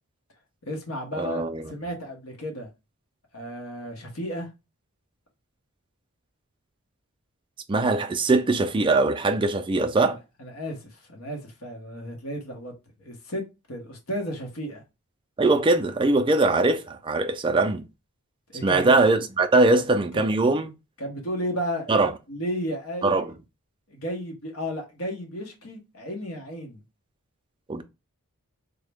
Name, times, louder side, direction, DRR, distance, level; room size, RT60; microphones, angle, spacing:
voice 1, 0.7-2.7 3.3-4.5 10.0-12.7 13.0-13.4 13.7-14.8 18.5-18.9 20.1-20.3 21.0-21.9 22.3-23.3 23.9-26.8, equal, 65° left, 1.1 m, -33 dB
voice 2, 1.2-1.6 7.7-10.2 15.4-17.9 18.6-20.7 21.9-22.1 23.0-23.3 27.7-27.8, right 2 dB, 20° right, 0.4 m, -21 dB
3.6 x 2.1 x 3.4 m
head